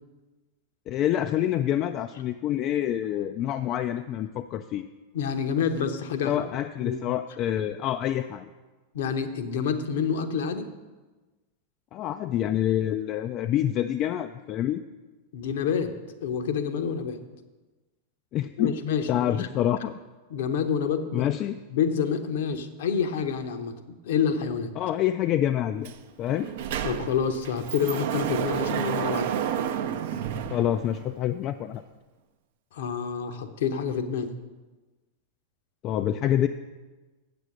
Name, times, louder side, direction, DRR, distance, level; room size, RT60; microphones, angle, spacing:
voice 1, 0.9-4.9 6.2-8.5 11.9-14.8 18.3-18.8 19.1-20.0 21.1-21.6 24.8-25.9 26.2-26.5 30.5-31.8 35.8-36.5, left 11 dB, 35° left, 8 dB, 0.3 m, -27 dB
voice 2, 5.1-6.3 6.8-7.0 8.9-10.7 15.3-15.9 16.2-17.2 18.6-19.5 20.3-21.3 21.7-24.7 26.8-29.3 32.7-34.3, left 7 dB, 55° left, 8 dB, 0.8 m, -28 dB
Sliding door, 25.8-26.0 26.3-31.3, right 9 dB, 55° right, 0.5 m, -31 dB
8.1 x 6.8 x 6.3 m, 1.2 s
figure-of-eight pair, 90°, 0 cm